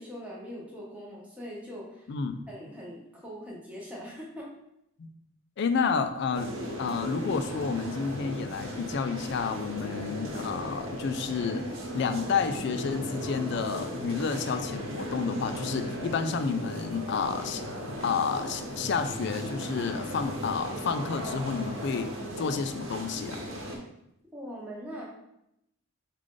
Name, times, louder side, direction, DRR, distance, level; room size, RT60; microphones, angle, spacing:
voice 1, 0.0-2.1 2.5-4.5 24.3-25.0, equal, 5° right, -5 dB, 0.9 m, -41 dB
voice 2, 2.1-2.5 5.0-5.1 5.6-6.5 6.8-11.7 11.9-17.6 18.0-23.4, left 5 dB, 50° left, 9 dB, 0.3 m, -30 dB
sound 1, 6.3-23.8, equal, 70° right, 1.0 m, -37 dB
4.8 x 2.4 x 3.7 m, 0.81 s
head